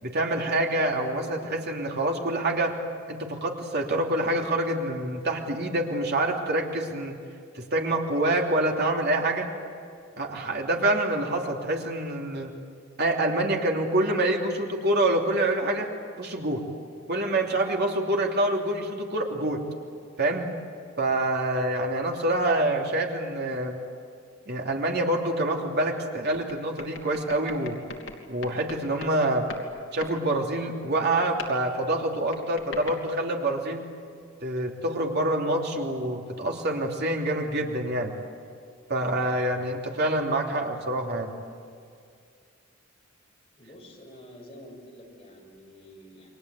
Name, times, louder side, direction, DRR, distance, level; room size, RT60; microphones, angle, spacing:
voice 1, 0.0-2.7 3.1-7.1 7.5-9.5 10.2-12.5 13.0-15.9 16.2-16.6 17.1-19.6 20.2-20.5 21.0-23.8 24.5-27.8 28.3-29.5 29.9-33.8 34.4-38.1 38.9-41.3, right 1 dB, 55° right, 1 dB, 3.1 m, -26 dB
sound 1, 26.3-29.2 29.5-30.2 31.4-31.6 32.3-32.9, left 3 dB, 70° left, 2.9 m, -41 dB
voice 2, 43.6-46.4, equal, 30° left, 0 dB, 6.4 m, -48 dB
29.5 x 23.5 x 8.5 m, 2.2 s
head